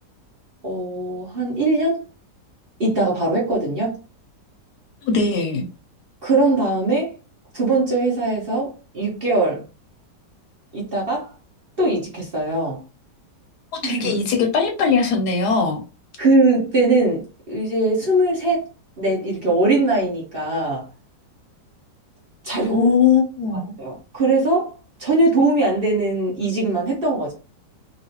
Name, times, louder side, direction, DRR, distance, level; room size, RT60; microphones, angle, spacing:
voice 1, 0.6-2.0 2.8-4.0 6.2-7.1 7.5-9.6 10.7-11.3 11.8-12.8 13.8-14.2 16.2-18.6 19.0-20.8 22.4-22.9 23.7-24.7 25.0-27.3, right 2 dB, 40° right, 1.0 m, -21 dB
voice 2, 5.0-5.7 13.7-15.8 22.7-23.6, left 5 dB, 70° left, 1.1 m, -20 dB
3.1 x 2.6 x 2.8 m
omnidirectional pair, 1.9 m